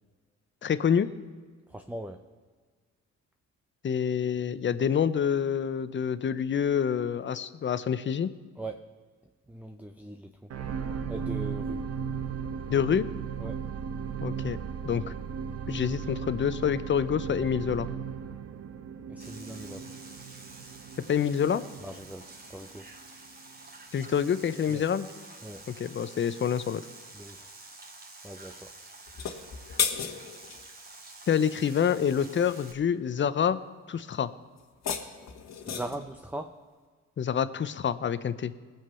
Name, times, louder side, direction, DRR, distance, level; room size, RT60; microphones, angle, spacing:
voice 1, 0.6-1.1 3.8-8.3 12.7-13.1 14.2-14.6 14.8-15.1 15.7-17.9 21.1-21.6 23.9-25.1 25.8-26.8 31.3-33.6 33.9-34.3 37.2-38.5, left 8 dB, 40° left, 14 dB, 0.7 m, -27 dB
voice 2, 1.7-2.2 8.6-8.9 9.5-10.5 11.1-11.9 13.4-13.6 19.1-19.9 21.8-22.8 24.7-24.8 25.4-25.6 27.1-27.5 28.2-28.7 35.7-36.6, right 1 dB, 5° right, 6 dB, 0.7 m, -40 dB
sound 1, 10.5-22.9 23.5-23.6, right 7 dB, 55° right, 1.1 m, -36 dB
sound 2, 19.2-32.7, right 2 dB, 30° right, 2.4 m, -49 dB
sound 3, 29.1-30.6 34.6-36.1, left 7 dB, 60° left, 1.4 m, -33 dB
19.5 x 7.4 x 5.6 m, 1.5 s
cardioid pair, 90°, 30 cm